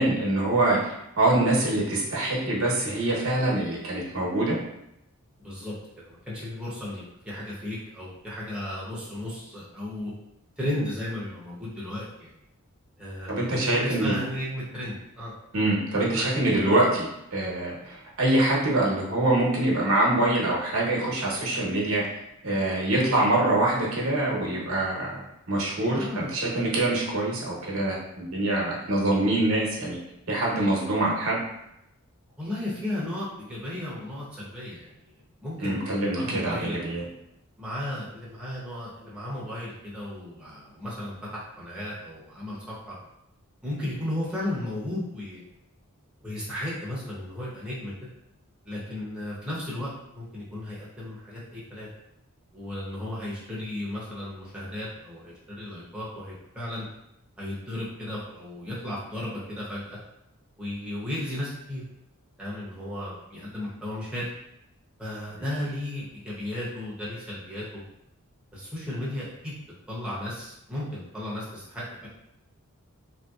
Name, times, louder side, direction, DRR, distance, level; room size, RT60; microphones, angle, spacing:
voice 1, 0.0-4.6 13.3-14.2 15.5-17.1 17.3-22.0 22.4-25.2 25.5-30.0 30.3-31.4 35.6-37.0, right 2 dB, 75° right, -4 dB, 0.9 m, -24 dB
voice 2, 5.4-10.1 10.6-12.3 13.0-15.3 16.1-16.3 25.9-26.3 32.4-35.1 35.4-36.8 37.6-42.9 43.6-45.5 46.2-47.9 48.7-51.9 52.5-56.9 57.4-60.0 60.6-61.8 62.4-64.3 65.0-67.8 68.5-69.5 69.9-72.1, left 1 dB, 5° right, -8 dB, 0.7 m, -35 dB
3.3 x 2.7 x 2.3 m, 0.82 s
head